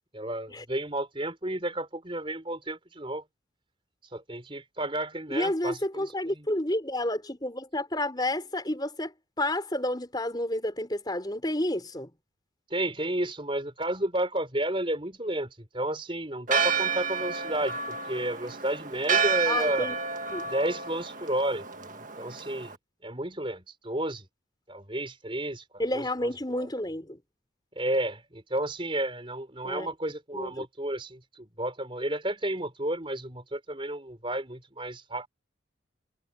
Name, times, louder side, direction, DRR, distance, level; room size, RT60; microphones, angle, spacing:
voice 1, 0.1-3.2 4.1-6.5 12.7-19.9 20.5-22.7 23.0-24.2 24.7-25.6 25.9-26.7 27.8-35.3, right 1 dB, 25° right, 4.7 m, -32 dB
voice 2, 5.3-12.1 19.5-20.0 20.3-20.5 25.8-27.2 29.6-29.9 30.3-30.7, left 1 dB, 20° left, 5.1 m, -30 dB
Church bell, 16.5-22.8, right 6 dB, 40° right, 1.8 m, -30 dB
head